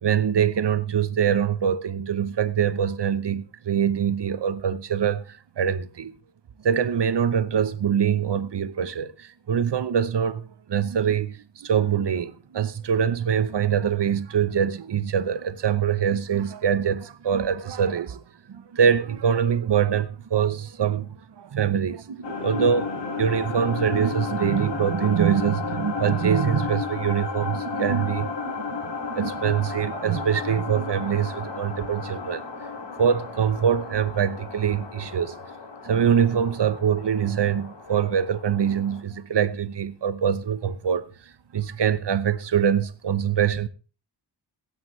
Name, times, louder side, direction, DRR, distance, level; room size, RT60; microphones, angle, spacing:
voice 1, 0.0-6.1 6.6-18.2 18.5-21.1 21.4-32.7 33.0-35.3 35.8-41.1 41.5-43.7, right 8 dB, 70° right, 0.9 m, -24 dB
sound 1, 22.2-39.0, left 5 dB, 70° left, 2.1 m, -33 dB
22.5 x 8.9 x 3.2 m
wide cardioid pair, 120°, 44 cm